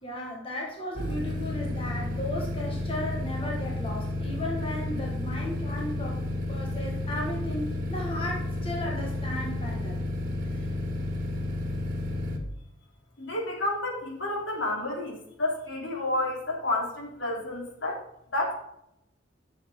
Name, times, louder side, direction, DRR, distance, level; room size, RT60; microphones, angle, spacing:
voice 1, 0.0-10.0 10.4-10.7, left 1 dB, 30° left, -1 dB, 1.7 m, -35 dB
sound 1, 1.0-12.4, left 1 dB, 45° right, 1.9 m, -31 dB
voice 2, 13.2-18.0 18.3-18.5, left 2 dB, 75° left, -2 dB, 3.4 m, -30 dB
11.0 x 7.0 x 3.8 m, 0.78 s
head